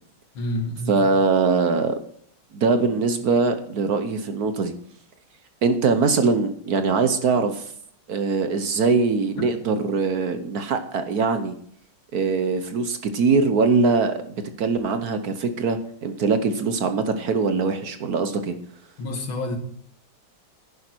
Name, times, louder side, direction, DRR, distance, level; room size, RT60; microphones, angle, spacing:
voice 1, 0.3-1.1 19.0-19.6, left 1 dB, 75° left, 2.6 m, -28 dB
voice 2, 0.9-2.0 2.5-4.7 5.6-7.7 8.1-11.5 12.1-18.5, right 4 dB, 60° right, 1.2 m, -22 dB
11.0 x 10.5 x 4.5 m
omnidirectional pair, 2.2 m